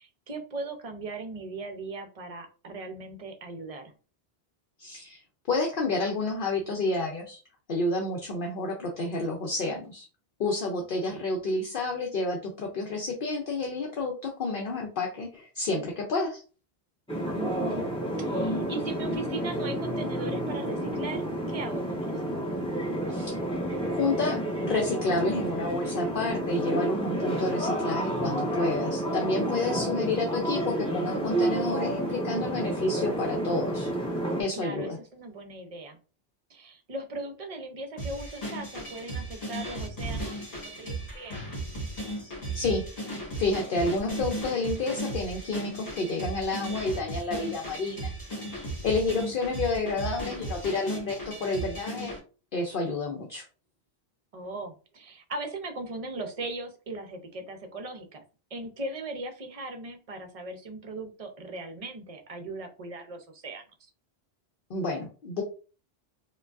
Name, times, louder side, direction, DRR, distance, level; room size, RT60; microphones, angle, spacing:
voice 1, 0.0-3.9 17.3-17.9 18.2-22.4 34.5-36.0 36.5-41.4 54.3-58.2 58.5-63.9, right 2 dB, 40° right, 6 dB, 0.6 m, -38 dB
voice 2, 4.8-5.2 5.5-7.4 7.7-10.1 10.4-16.4 23.1-23.4 23.9-33.9 34.4-35.0 42.1-42.8 43.4-48.1 48.8-52.1 52.5-53.4 64.7-65.4, left 3 dB, 60° left, 1 dB, 0.8 m, -30 dB
sound 1, 17.1-34.4, right 1 dB, 5° left, 0.9 m, -30 dB
sound 2, 38.0-52.2, right 1 dB, 35° left, 1.6 m, -36 dB
4.7 x 2.3 x 2.4 m, 0.36 s
omnidirectional pair, 1.1 m